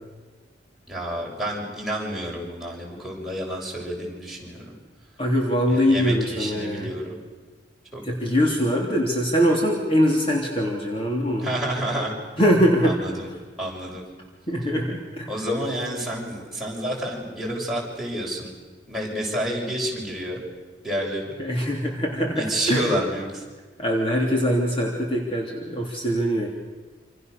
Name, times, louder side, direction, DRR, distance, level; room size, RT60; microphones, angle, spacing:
voice 1, 0.9-4.7 5.7-7.2 7.9-8.0 11.4-12.5 12.8-13.3 13.6-14.0 15.3-18.5 18.9-20.4 20.8-21.3 22.4-23.4, right 1 dB, ahead, -4 dB, 7.2 m, -29 dB
voice 2, 5.2-6.9 8.0-11.5 12.4-13.0 14.5-15.3 21.4-22.8 23.8-26.5, equal, 30° left, -1 dB, 3.2 m, -22 dB
28.0 x 27.5 x 6.9 m, 1.3 s
head